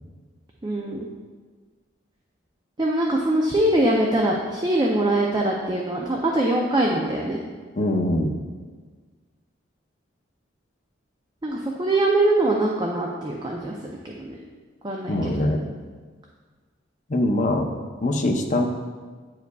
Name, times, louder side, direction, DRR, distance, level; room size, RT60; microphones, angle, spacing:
voice 1, 0.6-1.1 2.8-7.4 11.4-14.4 14.8-15.1, right 1 dB, 20° right, -1 dB, 0.4 m, -23 dB
voice 2, 7.8-8.3 15.1-15.6 17.1-17.7 18.0-18.6, left 1 dB, 40° left, 2 dB, 0.6 m, -22 dB
9.3 x 4.8 x 2.3 m, 1.5 s
head